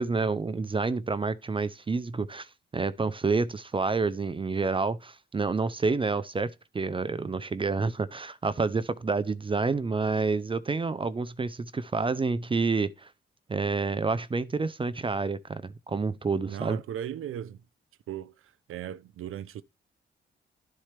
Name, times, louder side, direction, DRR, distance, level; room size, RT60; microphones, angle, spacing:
voice 1, 0.0-2.5 2.7-13.1 13.5-16.8, right 4 dB, 25° right, 0.5 m, -28 dB
voice 2, 16.5-17.6 18.1-19.6, right 10 dB, 80° right, 0.6 m, -37 dB
12.0 x 4.3 x 3.3 m
cardioid pair, 115°, 21 cm